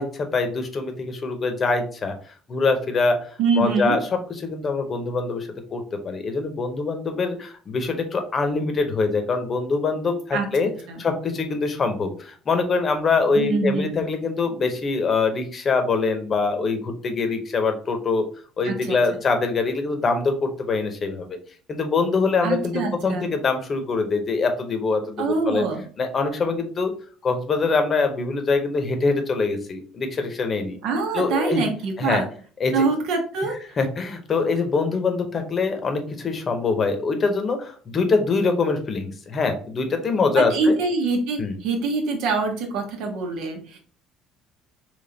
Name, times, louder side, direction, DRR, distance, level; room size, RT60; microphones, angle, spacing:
voice 1, 0.0-2.1 2.5-3.3 3.5-10.7 11.0-18.2 18.6-21.4 21.7-25.7 26.0-26.9 27.2-30.8 31.1-31.6 32.0-32.2 32.6-32.9 33.8-40.8 41.4-41.6, left 4 dB, 30° left, 6 dB, 0.8 m, -24 dB
voice 2, 3.4-4.0 10.3-11.0 13.3-14.0 18.6-19.0 22.4-23.3 25.2-25.8 30.8-32.3 32.7-33.6 40.3-43.8, right 3 dB, 75° right, 3 dB, 1.2 m, -24 dB
3.5 x 3.2 x 4.0 m, 0.43 s
cardioid pair, 135°, 0 cm